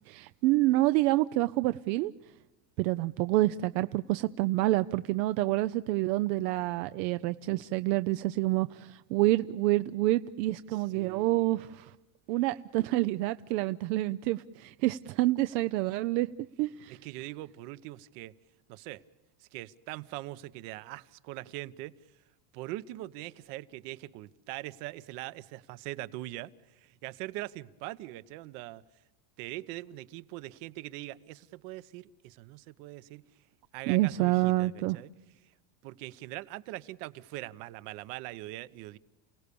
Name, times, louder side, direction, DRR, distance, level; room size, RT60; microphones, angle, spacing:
voice 1, 0.1-2.1 2.8-11.9 12.3-16.3 16.6-17.0 33.9-35.0, right 17 dB, 85° right, 13 dB, 0.7 m, -28 dB
voice 2, 10.7-11.6 16.9-18.3 18.7-19.0 19.4-22.2 22.5-28.8 29.4-33.2 33.7-35.1 35.4-35.5 35.8-39.0, right 17 dB, 70° right, 16 dB, 1.1 m, -42 dB
29.0 x 17.5 x 6.9 m, 1.0 s
cardioid pair, 150°, 49 cm